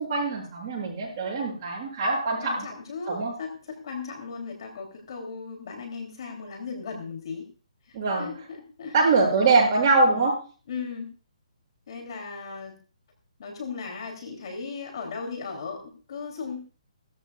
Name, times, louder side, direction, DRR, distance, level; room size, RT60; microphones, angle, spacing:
voice 1, 0.0-2.7 3.1-3.4 7.9-8.3 8.9-10.4, right 3 dB, 30° right, -4 dB, 7.9 m, -23 dB
voice 2, 2.4-7.5 7.9-8.9 9.4-9.5 10.0-10.2 10.7-11.1 11.9-12.8 13.4-16.6, left 5 dB, 50° left, 4 dB, 3.3 m, -37 dB
18.5 x 14.0 x 2.5 m, 0.35 s
hypercardioid pair, 165°, 4 cm